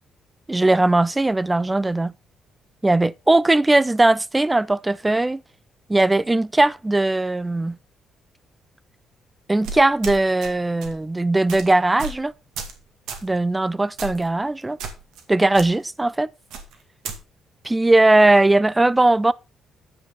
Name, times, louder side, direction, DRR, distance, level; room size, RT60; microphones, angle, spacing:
voice 1, 0.5-2.1 2.8-5.4 5.9-7.8 9.5-12.3 13.2-14.8 15.3-16.3 17.6-19.3, right 2 dB, 15° right, 0.5 m, -19 dB
sound 1, 9.6-10.5 10.8-11.0 11.5-11.6 12.0-12.2 12.6-12.8 13.1-13.3 14.0-14.3 14.8-15.2 15.5-15.7 16.5-17.2, right 5 dB, 90° right, 2.2 m, -33 dB
9.8 x 7.2 x 4.0 m
cardioid pair, 90°, 0 cm